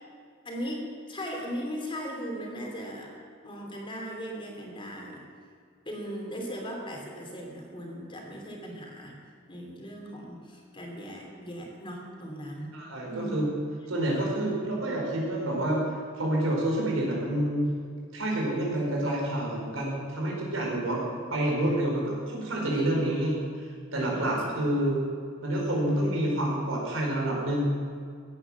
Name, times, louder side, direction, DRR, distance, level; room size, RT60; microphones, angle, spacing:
voice 1, 0.4-3.1 3.4-5.2 5.8-9.2 9.5-12.7 13.1-13.5 14.1-14.2 22.6-23.1 24.0-24.3 24.7-24.8, equal, 25° left, 0 dB, 3.0 m, -38 dB
voice 2, 12.7-13.4 13.9-17.7 18.1-21.0 21.3-25.0 25.4-27.7, right 1 dB, 85° right, -2 dB, 5.0 m, -28 dB
16.0 x 10.0 x 7.4 m, 2.1 s
head